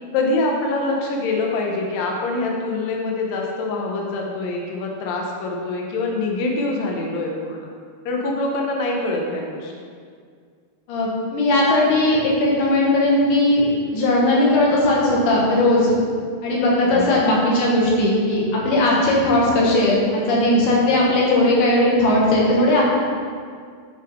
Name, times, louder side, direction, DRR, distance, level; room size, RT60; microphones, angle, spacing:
voice 1, 0.1-7.7 8.0-9.9 16.8-17.2 19.1-19.3, left 2 dB, 85° left, 0 dB, 1.5 m, -25 dB
voice 2, 10.9-16.0 16.4-22.8, left 1 dB, 60° left, -4 dB, 2.6 m, -18 dB
11.0 x 6.1 x 3.6 m, 2.1 s
omnidirectional pair, 4.6 m